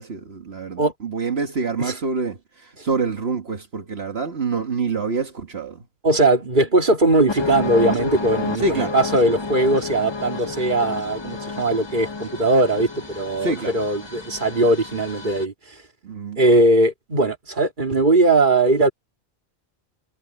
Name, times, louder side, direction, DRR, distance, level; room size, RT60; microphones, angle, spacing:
voice 1, 0.0-5.8 8.6-9.0 13.4-13.8 16.0-16.6, right 4 dB, 75° right, 1.9 m, -26 dB
voice 2, 6.0-12.9 13.1-15.5 16.4-18.9, right 2 dB, 50° right, 2.7 m, -19 dB
sound 1, 7.3-15.4, left 4 dB, 25° left, 1.3 m, -30 dB
omnidirectional pair, 1.1 m